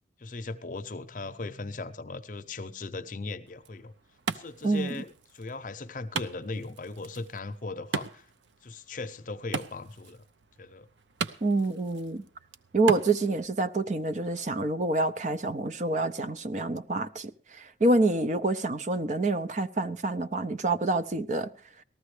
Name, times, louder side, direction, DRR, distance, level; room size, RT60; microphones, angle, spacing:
voice 1, 0.2-3.9 4.3-8.3 8.6-10.2 10.6-10.9, left 3 dB, 45° left, 0.7 m, -38 dB
Wood, 3.5-13.5, right 5 dB, 85° right, 0.6 m, -39 dB
voice 2, 4.6-5.0 11.4-12.2 12.7-21.5, right 2 dB, 40° right, 0.5 m, -27 dB
19.0 x 14.0 x 3.2 m
head